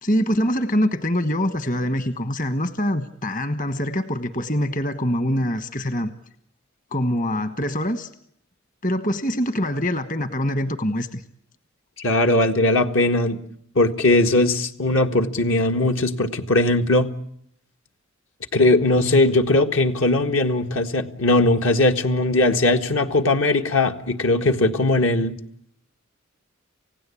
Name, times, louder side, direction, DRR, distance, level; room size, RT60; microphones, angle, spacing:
voice 1, 0.0-6.1 6.9-8.1 8.8-11.2, equal, 40° left, 10 dB, 1.3 m, -24 dB
voice 2, 12.0-13.4 13.7-17.1 18.5-25.3, left 2 dB, 75° left, 5 dB, 1.7 m, -19 dB
29.5 x 16.5 x 8.5 m, 0.70 s
head